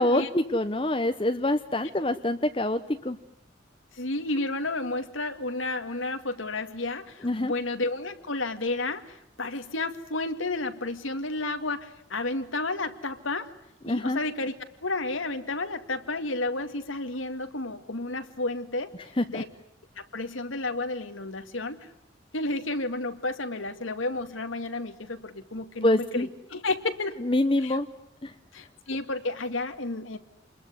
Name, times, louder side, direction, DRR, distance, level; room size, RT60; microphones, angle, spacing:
voice 1, 0.0-3.2 7.2-7.5 13.9-14.2 19.2-19.4 25.8-26.3 27.2-27.9 28.2-28.3, left 1 dB, 25° left, 7 dB, 1.0 m, -25 dB
voice 2, 3.9-13.5 13.9-14.5 14.8-19.5 20.0-21.8 22.3-27.2 27.6-27.8 28.5-30.2, left 2 dB, 90° left, 7 dB, 2.3 m, -31 dB
28.5 x 21.5 x 9.7 m, 0.76 s
head